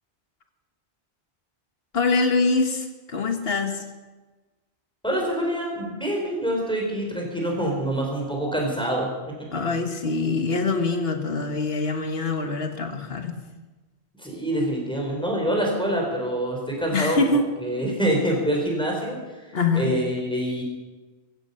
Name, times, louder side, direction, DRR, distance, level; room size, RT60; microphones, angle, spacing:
voice 1, 1.9-3.8 9.5-13.4 16.9-17.5 19.5-19.9, left 3 dB, 65° left, 6 dB, 1.7 m, -24 dB
voice 2, 5.0-9.5 14.2-17.2 17.6-19.2 19.7-20.6, right 1 dB, 5° left, -1 dB, 4.6 m, -26 dB
16.0 x 15.5 x 5.7 m, 1.2 s
omnidirectional pair, 1.1 m